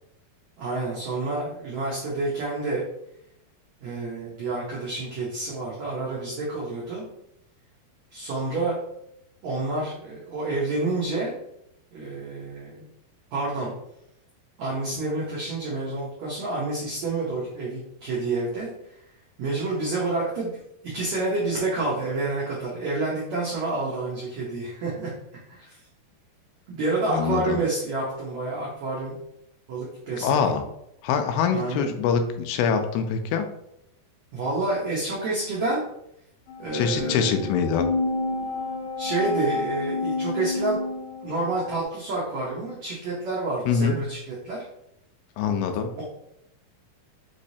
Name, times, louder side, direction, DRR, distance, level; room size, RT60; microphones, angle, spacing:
voice 1, 0.6-2.8 3.8-7.0 8.1-8.8 9.4-11.3 11.9-12.9 13.3-13.7 14.6-19.0 19.4-25.1 25.5-25.8 26.7-29.2 29.7-30.5 31.5-31.9 34.3-35.8 36.6-37.5 39.0-40.8 41.2-44.6, right 2 dB, 85° right, -5 dB, 1.5 m, -29 dB
voice 2, 27.1-27.6 30.2-30.6 31.0-33.5 36.7-37.9 43.7-44.0 45.4-45.9, left 6 dB, 85° left, 6 dB, 2.5 m, -24 dB
sound 1, 36.5-41.8, left 3 dB, 70° left, 2.7 m, -30 dB
5.8 x 3.1 x 2.7 m, 0.78 s
omnidirectional pair, 4.5 m